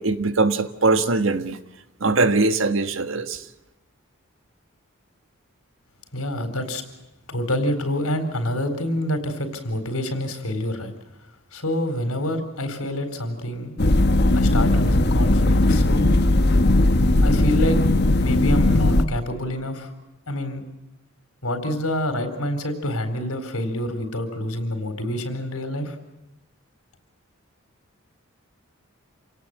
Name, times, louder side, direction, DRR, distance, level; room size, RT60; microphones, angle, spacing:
voice 1, 0.0-1.6 2.0-3.5, right 3 dB, 65° right, 10 dB, 1.5 m, -21 dB
voice 2, 6.1-6.8 7.3-10.9 11.5-13.8 14.3-16.1 17.2-17.8 18.2-19.9 20.3-20.6 21.4-26.0, left 1 dB, 85° left, 8 dB, 4.2 m, -27 dB
sound 1, 13.8-19.0, left 1 dB, 50° left, 1.2 m, -18 dB
27.5 x 18.5 x 7.8 m, 0.95 s
head